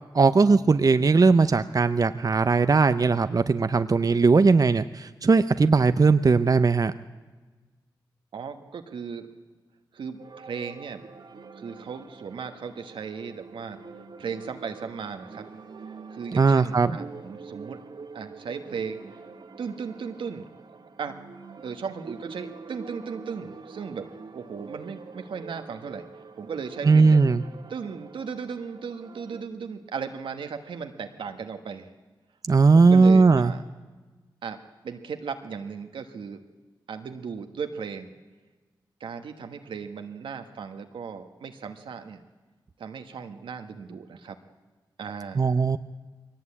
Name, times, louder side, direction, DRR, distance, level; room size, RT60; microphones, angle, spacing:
voice 1, 0.1-6.9 16.4-16.9 26.8-27.4 32.5-33.5 45.4-45.8, right 4 dB, 45° right, 11 dB, 0.7 m, -19 dB
voice 2, 8.3-9.3 9.9-11.0 11.6-13.8 14.2-15.5 16.1-17.8 18.1-19.2 19.6-20.5 21.0-21.2 21.6-26.0 26.4-27.2 27.7-31.9 32.7-33.6 34.4-34.6 34.8-36.4 36.9-38.1 39.0-42.2 42.8-44.4 45.0-45.5, right 6 dB, 90° right, 6 dB, 1.4 m, -36 dB
sound 1, 10.2-29.4, right 4 dB, 70° right, 1.5 m, -45 dB
22.0 x 18.0 x 8.6 m, 1.3 s
cardioid pair, 45°, 8 cm